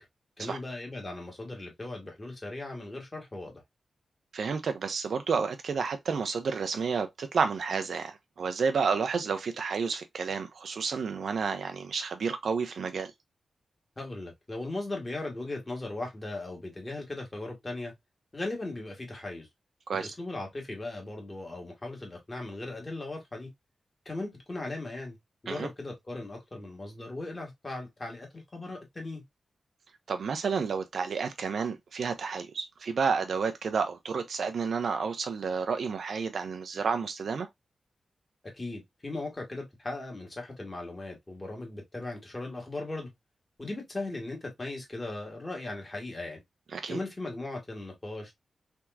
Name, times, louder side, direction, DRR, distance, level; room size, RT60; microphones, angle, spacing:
voice 1, 0.4-3.6 14.0-17.9 18.3-19.5 19.9-23.5 24.0-25.2 25.4-29.2 38.5-43.1 43.6-46.4 46.9-48.3, left 2 dB, 25° left, 1.6 m, -38 dB
voice 2, 4.3-13.1 19.9-20.1 25.5-25.7 30.1-37.5 46.7-47.0, right 5 dB, 75° right, 0.7 m, -30 dB
3.5 x 2.9 x 2.3 m
wide cardioid pair, 95°, 0 cm